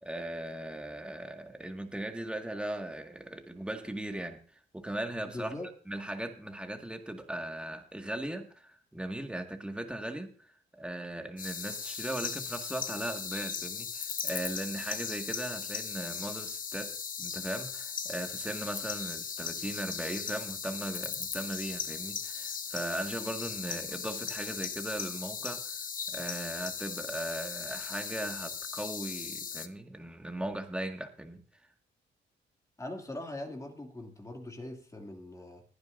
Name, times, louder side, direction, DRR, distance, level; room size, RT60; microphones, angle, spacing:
voice 1, 0.0-4.4 4.7-5.5 5.9-16.9 17.2-25.8 26.1-31.4, right 1 dB, 5° right, 4 dB, 1.9 m, -38 dB
voice 2, 5.3-5.7 32.8-35.6, left 1 dB, 15° left, 2 dB, 2.6 m, -41 dB
sound 1, 11.4-29.7, left 6 dB, 45° left, 1.1 m, -38 dB
22.5 x 9.7 x 2.6 m, 0.43 s
cardioid pair, 90°, 20 cm